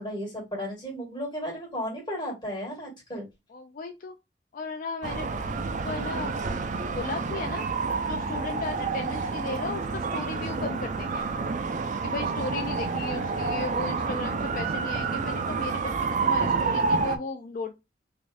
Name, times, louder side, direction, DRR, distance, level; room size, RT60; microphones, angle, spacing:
voice 1, 0.0-3.3 8.2-8.4, equal, 25° left, -2 dB, 2.0 m, -34 dB
voice 2, 3.5-4.1 4.5-6.3 6.9-7.7 8.1-11.3 12.0-17.7, left 3 dB, 50° left, 5 dB, 0.4 m, -35 dB
sound 1, 5.0-17.2, right 4 dB, 45° right, 0.4 m, -29 dB
3.5 x 3.1 x 2.5 m, 0.22 s
head